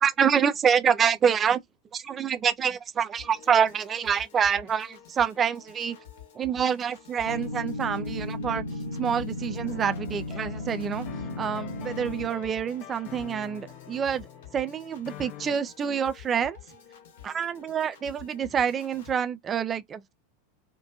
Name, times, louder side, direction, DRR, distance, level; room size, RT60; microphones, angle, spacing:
voice 1, 0.0-1.6 1.9-6.0 6.4-8.6 8.9-11.1 11.4-14.3 14.5-16.6 17.2-20.1, right 7 dB, 25° right, 0.4 m, -26 dB
Piano / Organ, 3.2-19.2, left 8 dB, 60° left, 0.9 m, -50 dB
sound 1, 7.2-12.3, left 1 dB, 90° left, 0.6 m, -35 dB
sound 2, 9.6-15.6, left 12 dB, 40° left, 0.4 m, -45 dB
2.5 x 2.2 x 2.4 m
figure-of-eight pair, 85°, 0 cm